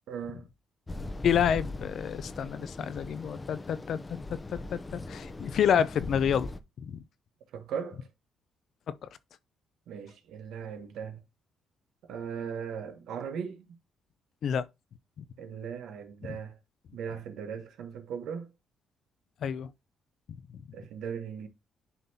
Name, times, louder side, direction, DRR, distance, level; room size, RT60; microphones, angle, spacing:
voice 1, 0.1-0.5 7.5-8.1 9.9-11.2 12.0-13.7 15.4-16.6 16.9-18.5 20.7-21.5, right 7 dB, 80° right, 1.3 m, -38 dB
sound 1, 0.9-6.6, left 2 dB, 20° left, 0.7 m, -40 dB
voice 2, 1.2-6.5 6.8-7.0 8.9-9.0 14.4-14.7 16.3-16.4 19.4-19.7 20.5-20.6, left 8 dB, 65° left, 0.6 m, -29 dB
11.0 x 3.8 x 2.8 m
cardioid pair, 90°, 0 cm